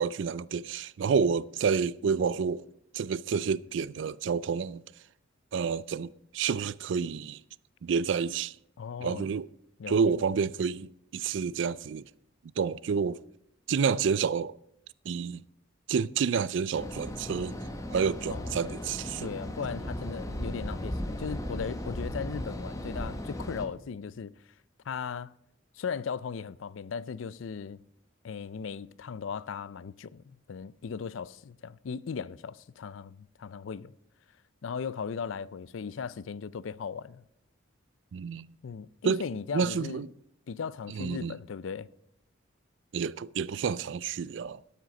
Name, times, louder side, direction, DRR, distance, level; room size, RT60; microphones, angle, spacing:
voice 1, 0.0-2.6 2.9-4.8 5.5-7.4 7.8-8.5 9.0-9.5 9.9-10.9 11.1-12.0 12.6-13.2 13.7-14.6 15.1-15.4 15.9-17.5 17.9-19.3 38.1-38.5 39.0-39.2 39.5-40.1 41.0-41.4 42.9-44.6, right 6 dB, 65° right, 0.4 m, -29 dB
voice 2, 8.8-9.3 9.8-10.2 18.3-18.6 19.2-24.3 24.9-25.3 25.7-27.8 28.2-33.9 34.6-37.2 38.6-40.1 40.5-41.9, left 6 dB, 75° left, 0.4 m, -37 dB
sound 1, 16.7-23.7, equal, 15° left, 1.1 m, -36 dB
12.5 x 9.1 x 5.2 m
head